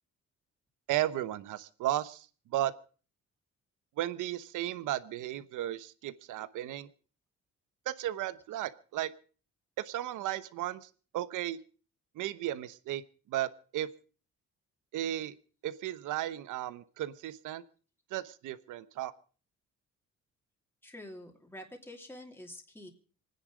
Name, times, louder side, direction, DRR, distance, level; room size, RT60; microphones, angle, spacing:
voice 1, 0.9-2.7 4.0-6.9 7.8-9.1 9.8-11.6 12.1-13.0 13.3-13.9 14.9-15.4 15.6-17.6 18.1-19.1, right 13 dB, 85° right, 14 dB, 1.0 m, -35 dB
voice 2, 20.8-22.9, left 1 dB, 5° left, 2 dB, 2.8 m, -47 dB
26.0 x 9.9 x 4.8 m, 0.39 s
cardioid pair, 90°, 30 cm